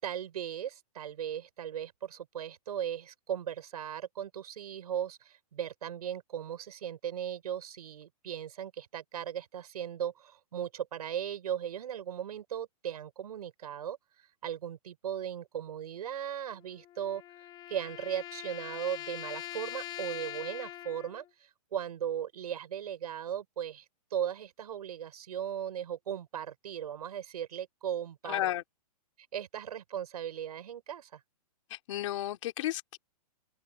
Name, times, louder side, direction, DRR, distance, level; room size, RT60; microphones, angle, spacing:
voice 1, 0.0-14.0 14.4-17.2 17.7-23.9 24.1-28.5 29.3-31.2, right 9 dB, 75° right, 5.6 m, -37 dB
sound 1, 16.5-21.3, left 14 dB, 20° left, 4.1 m, -43 dB
voice 2, 28.2-28.6 31.7-33.0, left 14 dB, 50° left, 3.1 m, -33 dB
hypercardioid pair, 160°, 20 cm